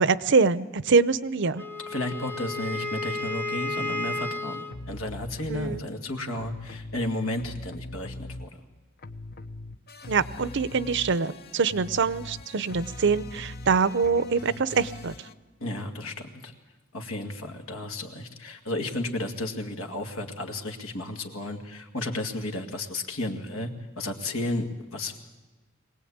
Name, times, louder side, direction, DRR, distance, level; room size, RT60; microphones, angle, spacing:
voice 1, 0.0-1.6 5.5-5.8 10.1-15.1, right 4 dB, 60° right, 16 dB, 0.7 m, -24 dB
Wind instrument woodwind instrument, 1.6-4.8, left 2 dB, 10° left, 1.0 m, -32 dB
voice 2, 1.9-8.6 15.6-16.5 16.9-23.7 24.0-25.2, left 2 dB, 80° left, 4 dB, 2.2 m, -33 dB
sound 1, 4.7-5.8 6.3-8.7 9.0-15.3, left 2 dB, 50° left, 0.9 m, -41 dB
23.5 x 18.5 x 8.6 m, 1.2 s
head